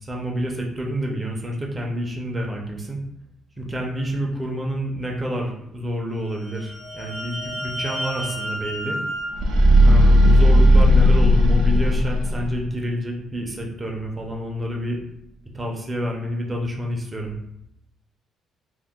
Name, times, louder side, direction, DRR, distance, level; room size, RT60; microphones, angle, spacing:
voice 1, 0.0-3.0 3.6-9.0 9.8-15.0 15.5-17.3, equal, 20° right, 0 dB, 0.5 m, -28 dB
sound 1, 6.3-10.8, equal, 40° left, 0.4 m, -33 dB
sound 2, 9.3-12.6, equal, 75° right, 0.5 m, -15 dB
2.8 x 2.0 x 3.5 m, 0.77 s
cardioid pair, 130°, 0 cm